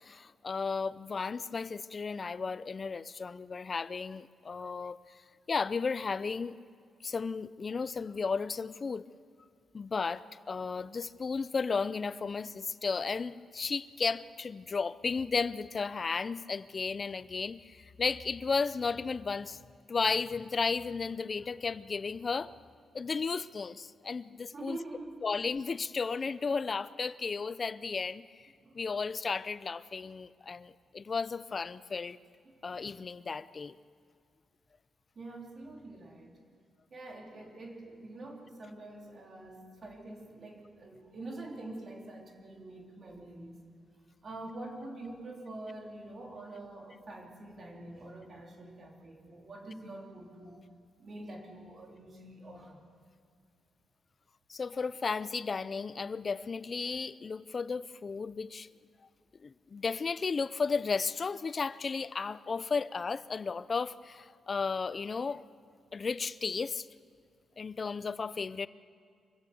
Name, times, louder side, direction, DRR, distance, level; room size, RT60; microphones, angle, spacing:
voice 1, 0.0-5.0 5.5-6.6 7.0-9.1 9.7-19.6 19.9-22.5 22.9-24.8 25.2-32.2 32.6-33.8 54.5-58.7 59.4-65.4 65.9-66.9 67.6-68.7, left 5 dB, 35° left, 17 dB, 0.5 m, -34 dB
voice 2, 24.5-25.2 28.6-28.8 35.1-36.4 36.9-43.6 44.2-50.6 51.0-52.8, right 2 dB, 45° right, 0 dB, 3.3 m, -46 dB
24.5 x 16.0 x 7.1 m, 2.2 s
cardioid pair, 110°, 0 cm